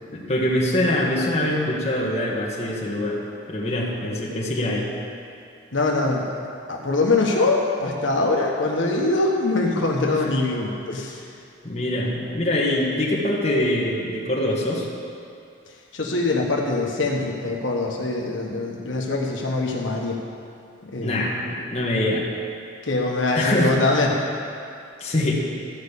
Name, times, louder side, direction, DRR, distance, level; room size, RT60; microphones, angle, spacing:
voice 1, 0.1-3.2 3.5-4.9 10.1-10.2 11.6-14.9 21.0-22.2 23.3-23.8 25.0-25.3, left 1 dB, 35° left, -4 dB, 1.7 m, -24 dB
voice 2, 5.7-6.3 6.7-11.2 15.9-20.2 20.8-21.3 22.8-24.1, left 2 dB, 80° left, -1 dB, 1.3 m, -23 dB
14.0 x 5.4 x 8.3 m, 2.5 s
head